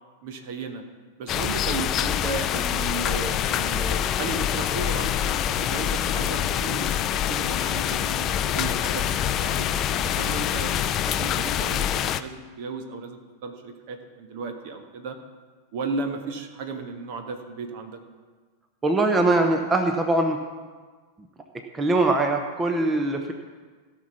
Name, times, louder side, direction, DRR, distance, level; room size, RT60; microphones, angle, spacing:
voice 1, 0.2-0.8 1.2-9.7 10.0-15.2 15.7-18.0, right 4 dB, 50° right, 6 dB, 1.3 m, -35 dB
sound 1, 1.3-12.2, left 10 dB, 35° left, 0.4 m, -25 dB
sound 2, 5.7-11.0, left 5 dB, 70° left, 0.9 m, -40 dB
voice 2, 18.8-20.4 21.7-23.3, right 2 dB, 15° right, 5 dB, 0.9 m, -22 dB
16.5 x 6.2 x 5.8 m, 1.4 s
figure-of-eight pair, 90°, 0 cm